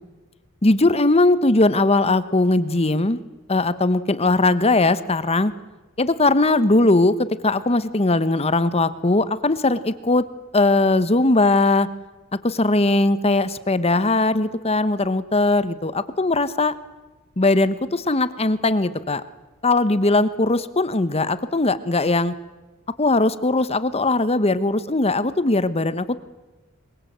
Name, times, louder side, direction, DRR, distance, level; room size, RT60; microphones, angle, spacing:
voice 1, 0.6-3.2 3.5-5.5 6.0-7.1 7.4-10.2 10.5-11.9 12.4-16.7 17.4-19.2 19.6-22.3 23.0-26.2, left 2 dB, 30° left, 14 dB, 1.1 m, -19 dB
27.0 x 23.0 x 8.1 m, 1.1 s
head